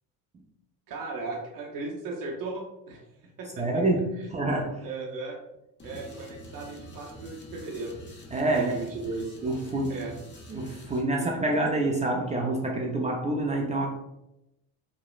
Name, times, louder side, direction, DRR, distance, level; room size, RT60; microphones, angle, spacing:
voice 1, 0.9-3.0 3.4-3.8 4.2-4.4 4.8-5.4 5.8-8.0 8.6-9.3 9.9-10.1 11.2-11.3, right 3 dB, 60° right, -1 dB, 0.6 m, -36 dB
voice 2, 3.6-4.8 8.3-8.8 9.4-10.0 10.5-13.9, right 2 dB, 20° right, -1 dB, 0.3 m, -27 dB
sound 1, 5.8-11.0, equal, 30° left, 0.7 m, -46 dB
3.0 x 2.1 x 2.3 m, 0.88 s
supercardioid pair, 65°, 39 cm